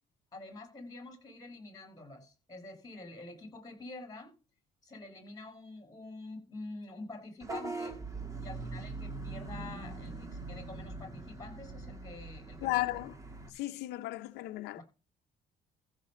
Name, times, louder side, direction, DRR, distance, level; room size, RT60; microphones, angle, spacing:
voice 1, 0.3-4.4 4.8-8.0 8.4-13.0 14.7-14.8, left 2 dB, 20° left, 7.3 m, -47 dB
Vehicle horn car horn honking / Bus, 7.4-13.5, right 3 dB, 20° right, 3.0 m, -42 dB
voice 2, 12.6-13.1 13.5-14.8, left 18 dB, 85° left, 0.7 m, -34 dB
15.5 x 6.7 x 3.8 m
cardioid pair, 110°, 17 cm